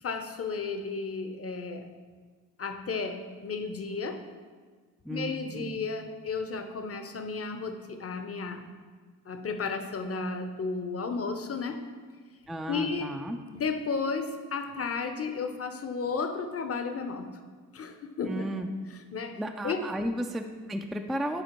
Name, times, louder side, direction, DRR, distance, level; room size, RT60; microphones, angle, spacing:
voice 1, 0.0-1.9 2.6-4.3 5.1-8.7 9.3-11.8 12.7-13.2 13.5-17.4 17.7-18.4 19.1-19.4 19.6-19.9, left 4 dB, 35° left, 7 dB, 0.7 m, -33 dB
voice 2, 5.0-5.7 12.5-13.4 18.3-18.7 19.4-21.4, right 1 dB, ahead, 4 dB, 0.3 m, -34 dB
7.8 x 4.2 x 3.0 m, 1.5 s
supercardioid pair, 40°, 39 cm